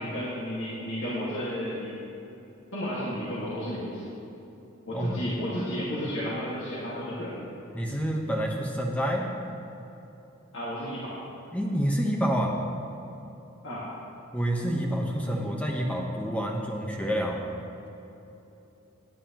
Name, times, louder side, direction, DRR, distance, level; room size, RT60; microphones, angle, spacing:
voice 1, 0.0-2.0 2.7-4.1 4.9-7.5 10.5-11.2 13.6-13.9, equal, 55° left, -8 dB, 1.9 m, -32 dB
voice 2, 7.7-9.3 11.5-12.6 14.3-17.4, equal, 5° left, 0 dB, 1.0 m, -28 dB
17.5 x 9.5 x 3.0 m, 3.0 s
head